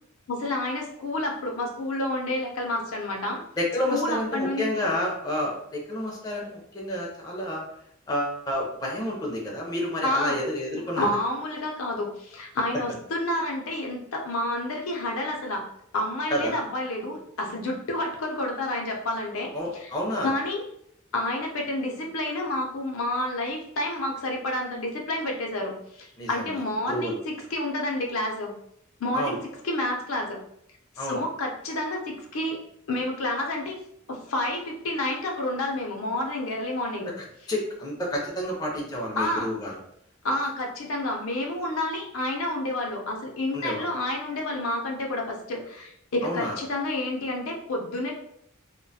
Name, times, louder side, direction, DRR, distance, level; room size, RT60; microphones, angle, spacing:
voice 1, 0.3-3.4 3.9-4.8 10.0-10.4 11.0-15.6 15.9-19.9 20.2-20.6 21.1-28.5 29.0-29.4 29.6-30.4 31.0-32.6 32.9-33.8 34.1-37.1 39.2-39.5 40.2-48.1, left 1 dB, 80° left, 1 dB, 0.5 m, -29 dB
voice 2, 3.6-7.6 8.1-11.1 16.3-16.6 19.5-20.3 26.2-26.5 26.9-27.2 29.1-29.4 31.0-31.2 37.5-39.7 43.5-43.9 46.2-46.6, left 1 dB, 20° left, -2 dB, 0.4 m, -29 dB
2.3 x 2.1 x 2.6 m, 0.71 s
head